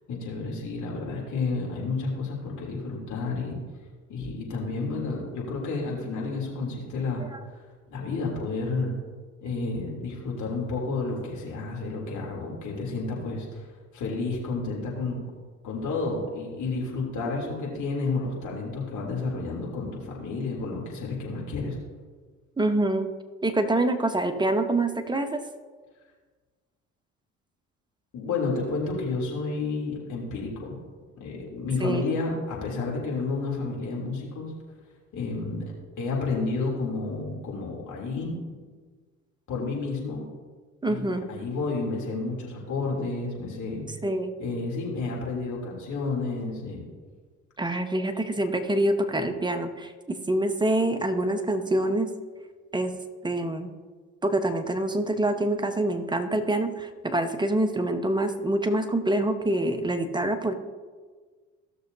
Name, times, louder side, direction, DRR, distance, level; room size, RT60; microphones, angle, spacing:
voice 1, 0.1-3.6 4.1-7.3 7.9-8.9 9.4-13.7 13.9-15.2 15.6-21.8 28.1-30.8 31.2-34.5 35.1-35.6 36.0-38.3 39.5-40.3 40.8-43.8 44.4-46.8, left 3 dB, 55° left, -2 dB, 3.2 m, -31 dB
voice 2, 22.6-23.1 23.4-25.4 31.8-32.0 40.8-41.3 44.0-44.3 47.6-49.9 50.3-52.1 52.7-52.9 53.2-53.7 54.2-60.5, right 1 dB, 10° right, 7 dB, 1.1 m, -25 dB
16.5 x 6.6 x 2.8 m, 1.5 s
hypercardioid pair, 60°, 37 cm